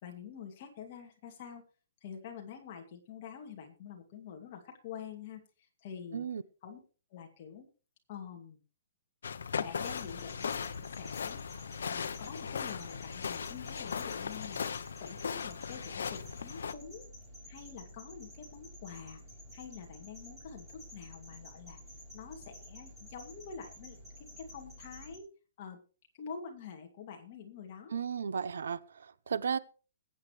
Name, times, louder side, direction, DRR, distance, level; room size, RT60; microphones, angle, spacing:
voice 1, 0.0-1.6 2.0-6.3 6.6-6.8 7.1-7.7 8.1-8.6 9.6-11.4 11.8-14.6 15.0-17.1 17.5-19.2 19.5-21.8 22.1-25.3 25.6-25.8 26.2-27.9, left 7 dB, 30° left, 2.4 m, -47 dB
sound 1, 9.2-16.7, left 6 dB, 90° left, 0.8 m, -38 dB
sound 2, 9.8-25.2, left 1 dB, 5° right, 3.5 m, -51 dB
voice 2, 27.9-29.6, right 7 dB, 80° right, 0.9 m, -34 dB
20.5 x 8.7 x 3.2 m
hypercardioid pair, 180°, 0 cm